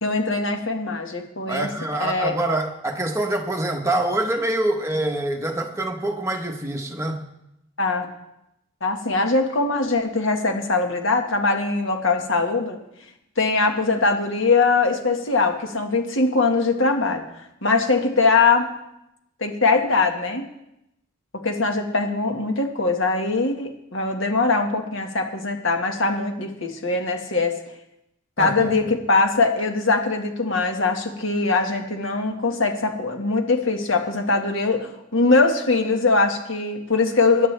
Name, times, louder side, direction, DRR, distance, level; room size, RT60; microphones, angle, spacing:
voice 1, 0.0-1.7 2.0-2.3 7.8-8.1 8.8-12.8 13.4-17.2 17.6-18.7 19.4-20.5 21.4-27.6 28.4-37.5, left 3 dB, 70° left, 4 dB, 1.7 m, -21 dB
voice 2, 1.5-7.2 28.4-28.8, right 1 dB, 15° right, 3 dB, 1.2 m, -25 dB
21.0 x 10.5 x 3.4 m, 0.85 s
head